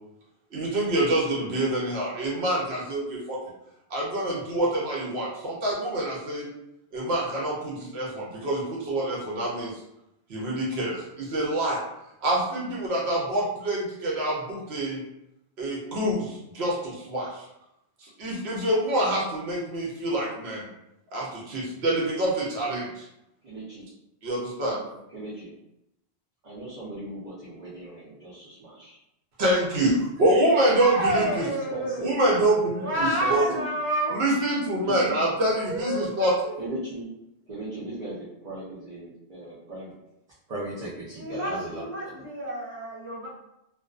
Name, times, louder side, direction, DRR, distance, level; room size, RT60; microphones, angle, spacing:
voice 1, 0.5-3.4 3.9-6.5 6.9-9.7 10.3-11.8 12.2-15.0 15.6-17.4 18.0-20.7 21.1-23.0 24.2-24.8 29.4-31.5 32.0-33.4 34.1-36.3, right 1 dB, 75° right, -4 dB, 0.9 m, -26 dB
voice 2, 23.4-23.8 24.6-24.8 25.1-25.5 26.4-29.0 30.7-30.8 31.3-32.1 32.8-33.6 34.8-35.3 36.6-37.1 37.5-39.9 40.5-41.8 42.2-42.3, right 1 dB, 45° right, -9 dB, 0.7 m, -37 dB
voice 3, 30.8-32.2 32.8-34.2 35.5-36.5 41.2-43.3, right 1 dB, 10° right, -12 dB, 1.3 m, -29 dB
2.5 x 2.2 x 2.4 m, 0.85 s
omnidirectional pair, 1.1 m